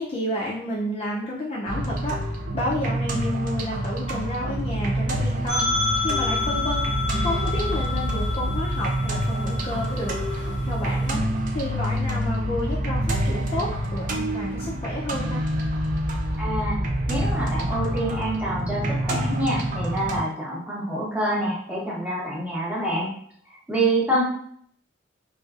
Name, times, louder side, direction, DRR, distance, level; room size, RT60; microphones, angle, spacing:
voice 1, 0.0-5.7 6.0-6.9 7.2-10.2 10.6-11.2 11.5-15.4, left 1 dB, 30° left, -4 dB, 0.3 m, -30 dB
sound 1, 1.7-20.2, right 1 dB, 45° right, 0.4 m, -27 dB
sound 2, 5.5-11.1, left 3 dB, 60° right, 1.2 m, -29 dB
voice 2, 16.4-16.8 17.1-23.1 23.7-24.2, right 1 dB, 5° right, -6 dB, 0.7 m, -26 dB
2.5 x 2.3 x 2.3 m, 0.63 s
head